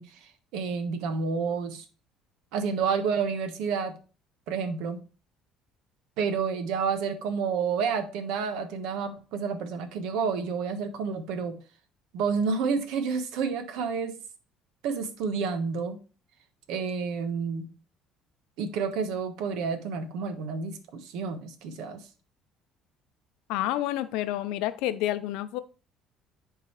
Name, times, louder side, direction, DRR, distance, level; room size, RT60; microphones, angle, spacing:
voice 1, 0.0-1.8 2.5-4.0 4.5-5.0 6.2-11.6 12.1-14.2 14.8-16.0 16.7-17.7 18.6-22.0, right 5 dB, 80° right, 9 dB, 1.1 m, -30 dB
voice 2, 23.5-25.6, left 14 dB, 85° left, 12 dB, 0.6 m, -29 dB
10.5 x 3.8 x 3.1 m, 0.35 s
cardioid pair, 115°, 0 cm